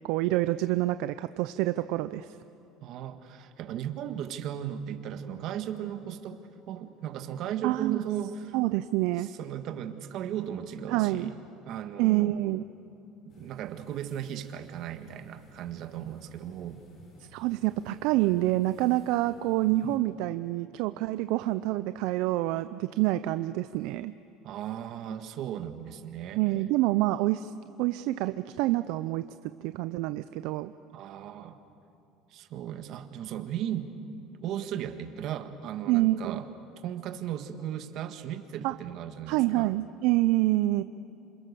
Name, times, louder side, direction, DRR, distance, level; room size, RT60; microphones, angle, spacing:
voice 1, 0.0-2.4 7.6-8.0 8.5-9.3 10.9-11.3 12.0-12.6 17.3-24.1 26.4-27.5 27.8-30.7 35.9-36.4 38.6-38.7 39.3-40.8, right 17 dB, 75° right, 12 dB, 0.5 m, -27 dB
voice 2, 2.8-6.4 6.7-8.6 9.2-11.4 11.7-12.4 13.4-16.8 19.8-20.0 24.4-26.4 30.9-31.6 32.3-33.9 34.4-36.5 36.8-39.7, right 10 dB, 55° right, 8 dB, 1.8 m, -36 dB
sound 1, 13.3-20.0, left 1 dB, 50° left, 7.2 m, -57 dB
27.5 x 27.0 x 7.0 m, 2.8 s
supercardioid pair, 115°, 0 cm